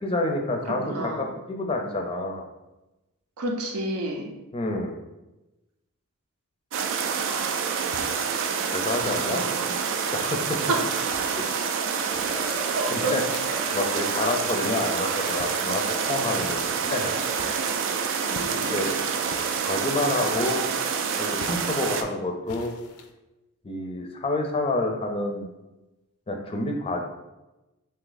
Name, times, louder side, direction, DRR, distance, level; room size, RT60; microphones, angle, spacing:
voice 1, 0.0-2.4 4.5-5.0 8.7-9.4 10.1-10.6 11.6-11.7 12.9-13.2 13.7-17.1 18.4-19.0 19.6-20.7 21.2-22.7 23.6-25.5 26.3-27.0, left 2 dB, 25° left, 3 dB, 0.4 m, -28 dB
voice 2, 0.7-1.3 3.4-4.4 7.2-7.8 9.0-9.7 10.7-11.1 12.7-13.2 18.3-19.1, right 2 dB, 85° right, 2 dB, 0.7 m, -31 dB
sound 1, 6.7-22.0, right 6 dB, 55° right, 0.3 m, -27 dB
sound 2, 7.9-8.4 9.0-9.5 10.1-10.6 11.1-11.6 12.1-12.6 13.1-13.8 14.4-14.8 15.4-15.9 16.4-16.8 17.3-17.8 18.3-18.7 19.3-19.7 20.3-20.8 21.4-21.9 22.5-23.1, left 4 dB, 80° left, 0.4 m, -45 dB
Singing / Crowd, 12.2-17.8, equal, 30° right, 0.7 m, -39 dB
3.5 x 2.7 x 3.9 m, 1.0 s
head